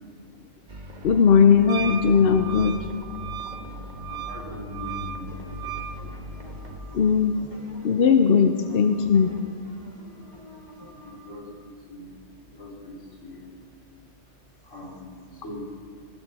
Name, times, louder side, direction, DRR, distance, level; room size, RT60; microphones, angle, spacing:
sound 1, 0.7-6.8, left 1 dB, 35° right, 1.7 m, -39 dB
voice 1, 1.0-2.9 6.9-7.4 7.8-9.3, left 6 dB, 55° left, 8 dB, 0.8 m, -18 dB
Wind instrument woodwind instrument, 1.7-6.0, right 9 dB, 80° right, 1.2 m, -36 dB
voice 2, 4.1-5.6 11.0-11.5 11.9-12.1 12.5-13.5 14.6-15.7, left 1 dB, 85° left, -3 dB, 3.6 m, -41 dB
sound 2, 5.3-11.3, equal, 20° left, 3.0 m, -46 dB
20.0 x 16.0 x 4.1 m, 2.1 s
omnidirectional pair, 1.3 m